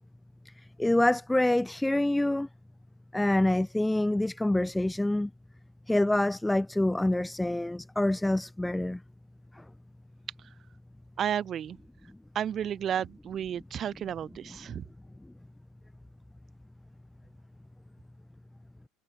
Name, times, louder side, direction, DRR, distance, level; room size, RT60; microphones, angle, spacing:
voice 1, 0.5-2.5 3.1-5.3 5.9-9.0 9.5-9.6 14.7-14.8, left 1 dB, 5° left, 3.6 m, -26 dB
voice 2, 11.2-11.8 12.3-14.8, right 9 dB, 30° right, 3.4 m, -32 dB
supercardioid pair, 145°, 0 cm